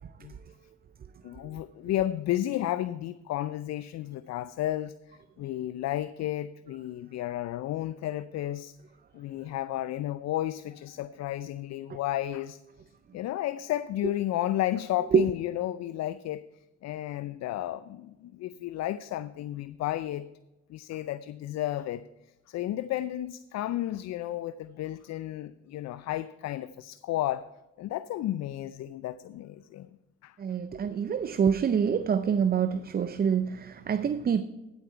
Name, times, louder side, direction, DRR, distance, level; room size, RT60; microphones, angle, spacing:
voice 1, 1.2-8.7 9.1-12.6 13.1-16.5 16.8-20.3 20.7-22.1 22.5-27.5 27.8-29.9 30.2-30.4, left 13 dB, 60° left, 0.4 m, -32 dB
voice 2, 30.4-34.4, right 7 dB, 30° right, 0.5 m, -26 dB
10.0 x 8.1 x 4.5 m
supercardioid pair, 70°, 31 cm